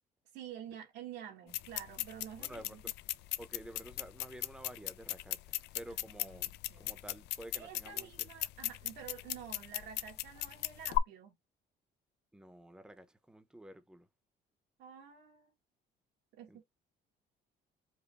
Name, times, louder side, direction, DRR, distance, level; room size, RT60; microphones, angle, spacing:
voice 1, 0.3-2.8 5.9-7.0 7.5-11.4 14.8-15.5 16.3-16.6, right 9 dB, 85° right, 1.9 m, -49 dB
sound 1, 1.5-11.0, left 17 dB, 80° left, 0.5 m, -38 dB
voice 2, 2.4-2.9 3.4-8.3 12.3-14.1 16.5-16.6, right 1 dB, 5° right, 0.8 m, -51 dB
5.3 x 2.2 x 3.4 m
cardioid pair, 110°, 17 cm